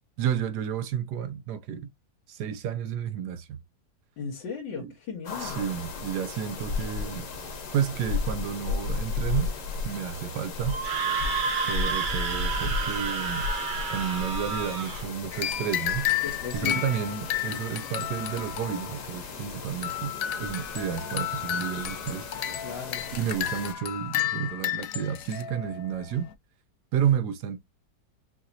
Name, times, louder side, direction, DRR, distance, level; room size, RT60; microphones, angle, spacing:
voice 1, 0.2-1.9 2.3-3.6 4.7-4.9 5.4-7.3 7.7-9.5 9.8-10.8 11.6-13.5 13.9-16.1 16.5-20.1 20.4-22.3 23.1-26.3 26.9-27.6, right 8 dB, 75° right, 1.1 m, -31 dB
voice 2, 4.2-5.6 16.2-16.8 17.5-17.6 22.6-23.0, left 6 dB, 85° left, 1.9 m, -36 dB
sound 1, 5.3-23.7, left 4 dB, 50° left, 1.3 m, -35 dB
Screaming, 10.7-15.0, right 4 dB, 40° right, 0.7 m, -30 dB
sound 2, 15.3-26.3, left 11 dB, 65° left, 0.9 m, -32 dB
5.7 x 3.0 x 2.7 m
omnidirectional pair, 1.9 m